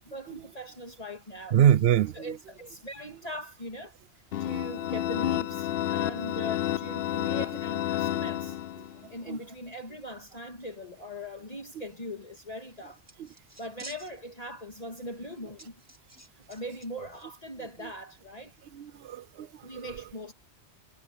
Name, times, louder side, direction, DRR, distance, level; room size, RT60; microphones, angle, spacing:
voice 1, 0.1-1.6 2.1-3.9 4.4-8.6 9.1-13.0 13.6-15.7 16.4-18.5 19.6-20.3, equal, 35° left, 2.5 m, -40 dB
voice 2, 1.5-2.3 9.3-9.4 13.2-13.3 18.7-19.9, right 10 dB, 70° right, 0.8 m, -24 dB
sound 1, 4.3-9.1, left 12 dB, 65° left, 0.7 m, -30 dB
sound 2, 12.8-14.5 14.8-14.9 15.6-16.9 17.1-17.2, right 1 dB, 15° right, 2.3 m, -49 dB
omnidirectional pair, 1.1 m